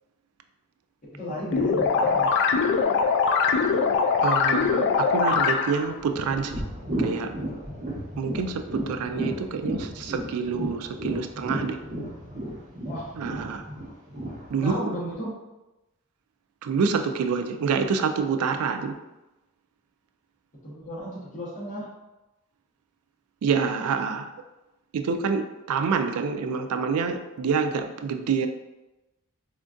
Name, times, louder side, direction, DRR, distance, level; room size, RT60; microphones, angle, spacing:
voice 1, 1.1-2.4 12.8-13.1 14.6-15.4 20.6-21.9, equal, 35° left, 1.4 m, -34 dB
sound 1, 1.5-5.9, left 5 dB, 55° left, 0.3 m, -22 dB
voice 2, 4.2-6.6 7.0-7.3 8.2-11.8 13.2-13.6 14.5-14.9 16.6-19.0 23.4-24.3 24.9-28.5, right 5 dB, 85° right, 0.3 m, -27 dB
sound 2, 5.8-14.7, right 1 dB, 40° right, 1.0 m, -33 dB
4.3 x 2.4 x 2.6 m
head